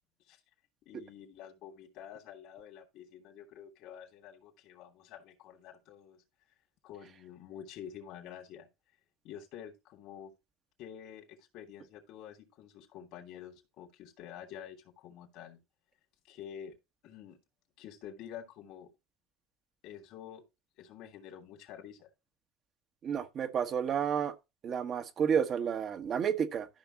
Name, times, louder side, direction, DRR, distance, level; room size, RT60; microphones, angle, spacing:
voice 1, 0.8-6.2 6.8-8.7 9.2-10.3 10.8-15.6 16.2-16.8 17.0-17.4 17.8-18.9 19.8-20.4 20.8-22.1, left 9 dB, 60° left, 2.9 m, -48 dB
voice 2, 23.0-24.3 24.6-26.7, right 7 dB, 45° right, 1.4 m, -31 dB
13.5 x 5.9 x 3.0 m
hypercardioid pair, 80°, 0 cm